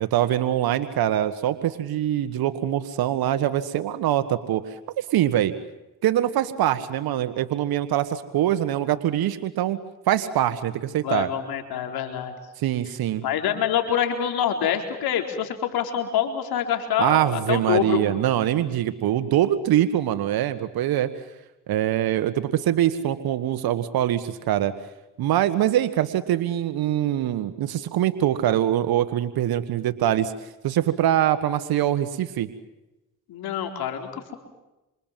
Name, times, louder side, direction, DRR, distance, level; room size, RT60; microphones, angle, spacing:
voice 1, 0.0-4.6 5.0-5.5 6.0-9.8 10.1-11.3 12.6-13.2 17.0-21.1 21.7-24.7 25.2-30.3 30.6-32.5, right 12 dB, 80° right, 11 dB, 1.7 m, -23 dB
voice 2, 11.0-12.3 13.2-18.0 33.3-34.3, left 9 dB, 80° left, 4 dB, 4.3 m, -26 dB
28.5 x 26.5 x 7.6 m, 0.98 s
supercardioid pair, 65°, 36 cm